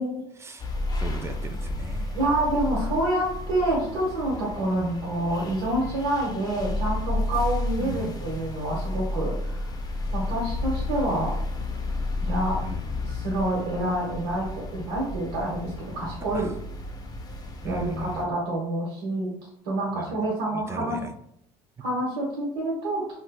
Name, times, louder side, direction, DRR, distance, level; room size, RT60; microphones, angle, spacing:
voice 1, 0.4-2.2 7.8-8.3 12.6-13.2 16.3-16.5 17.6-18.2 19.9-20.2 20.5-21.1, right 3 dB, 20° right, 7 dB, 0.4 m, -37 dB
sound 1, 0.6-18.2, left 2 dB, 30° left, 0.6 m, -32 dB
voice 2, 2.1-9.7 10.1-11.4 12.2-12.6 13.1-16.5 17.6-19.3 19.6-21.0 21.8-23.0, right 1 dB, 85° right, -4 dB, 1.0 m, -27 dB
3.2 x 2.7 x 2.3 m, 0.73 s
supercardioid pair, 85°, 14 cm